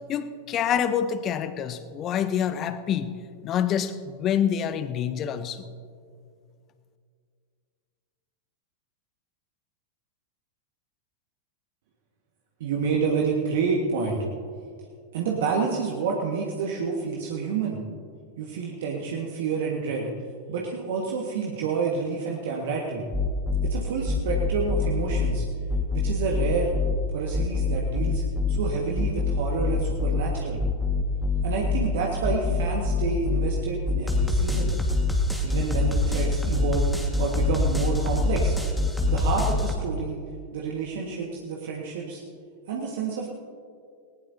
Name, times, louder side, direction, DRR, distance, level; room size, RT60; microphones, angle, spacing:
voice 1, 0.1-3.2 3.4-5.7, left 8 dB, 30° left, 13 dB, 0.8 m, -27 dB
voice 2, 12.6-14.2 15.1-17.8 18.4-20.1 20.5-23.0 23.6-25.4 25.9-26.7 27.1-28.2 28.5-30.6 31.4-34.7 35.4-36.9 37.2-38.5 39.1-40.2 40.5-42.2 42.7-43.3, right 5 dB, 55° right, -2 dB, 1.6 m, -29 dB
sound 1, 23.1-23.7 24.1-25.3 25.7-27.0 27.3-28.6 29.0-30.2 30.6-31.9 32.2-33.5 33.9-39.8, left 3 dB, ahead, 1.7 m, -24 dB
19.5 x 18.5 x 2.8 m, 2.2 s
figure-of-eight pair, 90°, 0 cm